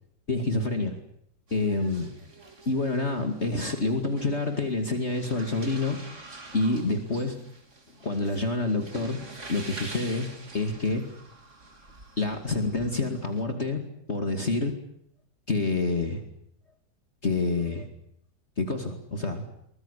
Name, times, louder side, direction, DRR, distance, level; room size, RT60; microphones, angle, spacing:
voice 1, 0.3-1.0 1.5-2.1 2.7-6.0 6.5-7.4 8.0-9.2 9.5-11.1 12.2-13.8 14.1-14.8 15.5-16.2 17.2-17.9 18.6-19.4, left 3 dB, 35° left, 6 dB, 2.6 m, -27 dB
sound 1, 1.5-13.4, right 2 dB, 40° right, 3.6 m, -46 dB
24.0 x 21.0 x 8.3 m, 0.72 s
omnidirectional pair, 2.0 m